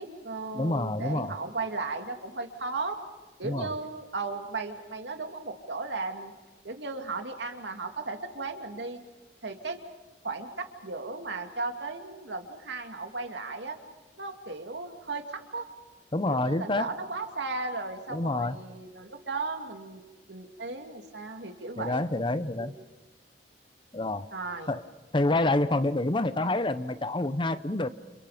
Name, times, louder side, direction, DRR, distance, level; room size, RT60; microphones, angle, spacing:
voice 1, 0.0-3.0 3.4-6.3 6.6-9.0 9.4-9.8 10.2-13.8 14.2-15.6 16.3-20.0 20.3-22.0 22.6-22.7 24.3-24.7, right 3 dB, 80° right, 4 dB, 2.6 m, -36 dB
voice 2, 0.5-1.3 3.4-3.7 16.1-16.9 18.1-18.6 21.8-22.7 23.9-24.3 24.7-24.8 25.1-27.9, left 2 dB, 30° left, 13 dB, 0.8 m, -27 dB
29.5 x 29.5 x 5.1 m, 1.2 s
head